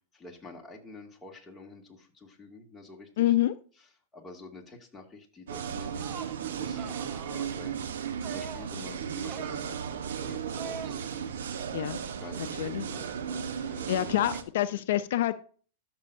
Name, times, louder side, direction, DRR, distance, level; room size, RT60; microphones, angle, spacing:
voice 1, 0.1-3.3 3.8-3.9 4.1-9.8 10.2-11.3 12.2-14.1, left 3 dB, 10° left, -2 dB, 2.3 m, -48 dB
voice 2, 3.2-3.5 11.7-12.0 12.6-12.8 13.9-15.3, left 14 dB, 70° left, 12 dB, 0.5 m, -26 dB
sound 1, 5.5-14.4, right 7 dB, 80° right, 1.0 m, -35 dB
sound 2, 5.9-6.4 6.8-7.5 8.2-8.8 9.2-9.6 10.6-11.0, right 6 dB, 35° right, 0.8 m, -42 dB
13.0 x 6.1 x 2.7 m, 0.41 s
hypercardioid pair, 125°, 0 cm